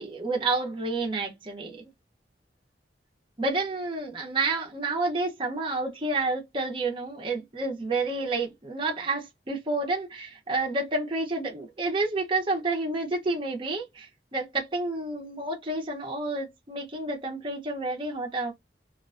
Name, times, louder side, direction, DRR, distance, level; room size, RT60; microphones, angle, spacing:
voice 1, 0.0-1.9 3.4-18.5, right 3 dB, 30° right, 0.6 m, -29 dB
2.4 x 2.2 x 2.4 m
head